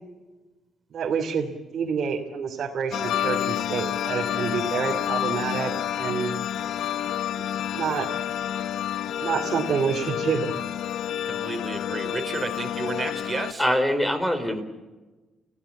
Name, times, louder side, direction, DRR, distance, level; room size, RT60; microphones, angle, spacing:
voice 1, 0.9-6.3 7.3-7.4 7.7-8.1 9.2-10.6, right 6 dB, 60° right, -1 dB, 3.0 m, -28 dB
sound 1, 2.9-13.5, left 10 dB, 75° left, 0.8 m, -29 dB
voice 2, 11.3-13.7, right 3 dB, 30° right, 6 dB, 4.2 m, -32 dB
voice 3, 13.6-14.6, equal, 5° left, 9 dB, 3.7 m, -23 dB
29.0 x 16.0 x 8.5 m, 1.2 s
cardioid pair, 90°, 0 cm